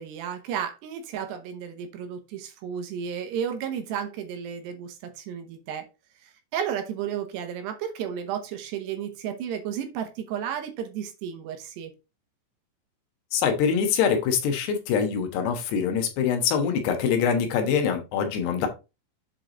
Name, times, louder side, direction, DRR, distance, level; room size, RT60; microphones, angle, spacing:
voice 1, 0.0-5.8 6.2-11.9, right 8 dB, 70° right, 3.0 m, -33 dB
voice 2, 13.3-18.7, left 7 dB, 70° left, 3.1 m, -24 dB
8.0 x 4.9 x 3.8 m
omnidirectional pair, 5.5 m